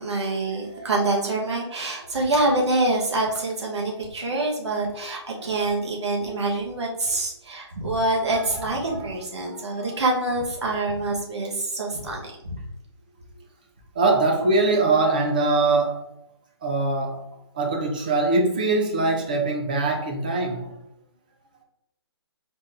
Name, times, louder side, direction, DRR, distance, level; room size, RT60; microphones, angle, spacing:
voice 1, 0.0-12.6, right 2 dB, 80° right, -1 dB, 1.1 m, -26 dB
voice 2, 9.4-9.9 13.9-16.0 16.6-17.2 17.5-20.8, right 3 dB, 20° right, 2 dB, 0.4 m, -23 dB
4.1 x 2.5 x 3.4 m, 0.82 s
hypercardioid pair, 165°, 14 cm